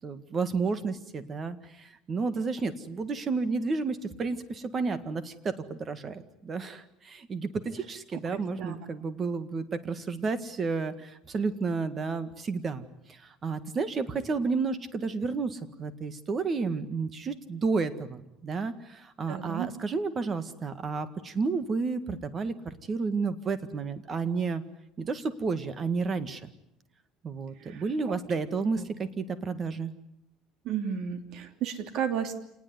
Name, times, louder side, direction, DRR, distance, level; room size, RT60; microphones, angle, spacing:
voice 1, 0.0-24.6 25.0-26.5 27.2-29.9, right 4 dB, 25° right, 12 dB, 1.8 m, -31 dB
voice 2, 8.3-8.7 19.3-19.7 27.6-28.1 28.8-28.9 30.6-32.3, right 8 dB, 55° right, 8 dB, 3.2 m, -33 dB
27.5 x 19.5 x 9.7 m, 0.81 s
cardioid pair, 150°, 0 cm